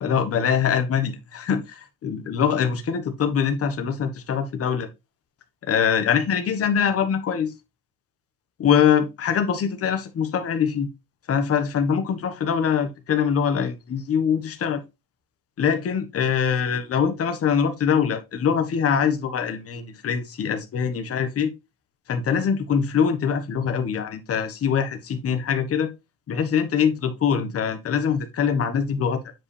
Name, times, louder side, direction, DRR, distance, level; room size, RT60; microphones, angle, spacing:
voice 1, 0.0-4.9 5.6-7.5 8.6-10.9 11.3-14.8 15.6-21.5 22.1-25.9 26.3-29.2, left 7 dB, 35° left, 1.3 m, -23 dB
7.9 x 4.9 x 3.3 m
cardioid pair, 135°, 38 cm